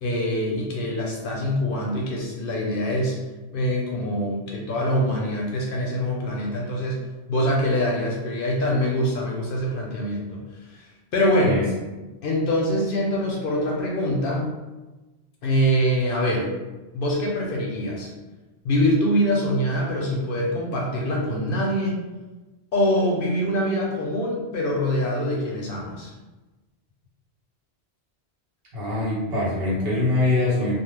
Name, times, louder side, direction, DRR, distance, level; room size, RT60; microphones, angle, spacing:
voice 1, 0.0-3.2 3.5-7.0 7.3-11.7 12.2-14.5 15.4-16.5 16.9-18.1 18.6-22.0 22.7-26.1, equal, 60° left, -2 dB, 0.7 m, -24 dB
voice 2, 28.7-30.8, left 2 dB, 65° right, -6 dB, 1.1 m, -23 dB
2.3 x 2.2 x 3.2 m, 1.2 s
omnidirectional pair, 1.1 m